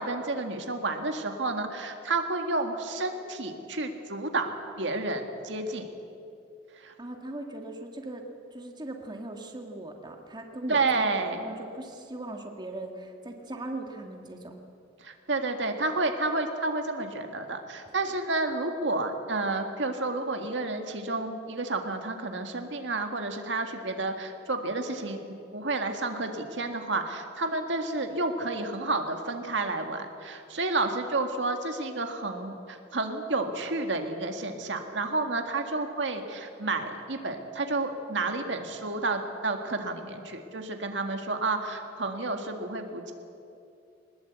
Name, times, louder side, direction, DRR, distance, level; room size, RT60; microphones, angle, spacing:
voice 1, 0.0-5.9 6.8-6.9 10.7-11.4 15.0-43.1, right 3 dB, 70° right, 5 dB, 1.9 m, -30 dB
voice 2, 7.0-8.2 8.5-11.1 11.4-14.5, right 2 dB, 25° right, 3 dB, 1.8 m, -39 dB
21.5 x 20.5 x 8.2 m, 2.7 s
head